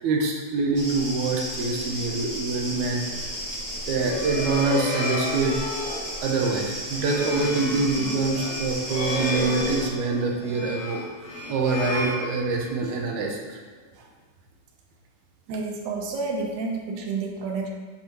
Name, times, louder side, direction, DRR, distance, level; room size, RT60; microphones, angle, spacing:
voice 1, 0.0-3.3 3.9-5.6 6.2-11.1 11.5-13.6, right 3 dB, 75° right, 0 dB, 2.1 m, -25 dB
sound 1, 0.7-9.9, equal, 20° right, 0.9 m, -34 dB
sound 2, 3.8-12.9, left 2 dB, 50° left, 2.6 m, -32 dB
voice 2, 15.5-17.7, right 4 dB, 90° right, 1 dB, 2.4 m, -30 dB
6.5 x 5.9 x 3.0 m, 1.5 s
omnidirectional pair, 3.6 m